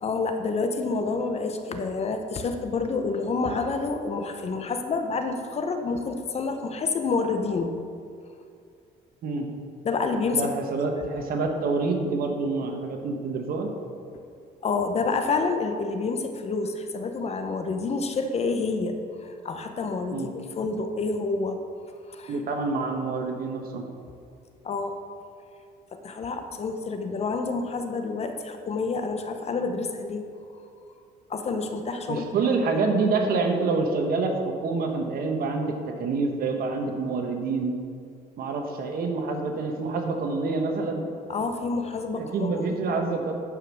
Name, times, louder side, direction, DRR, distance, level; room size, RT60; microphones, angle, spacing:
voice 1, 0.0-7.7 9.8-10.5 14.6-21.6 22.1-22.3 24.6-24.9 25.9-30.2 31.3-32.3 41.3-43.0, left 4 dB, 40° left, 6 dB, 0.9 m, -28 dB
voice 2, 10.3-13.7 20.1-20.3 22.3-23.8 32.1-37.8 38.4-41.1 42.1-43.3, right 3 dB, 60° right, 4 dB, 1.4 m, -27 dB
11.0 x 5.5 x 6.2 m, 2.3 s
cardioid pair, 110°, 17 cm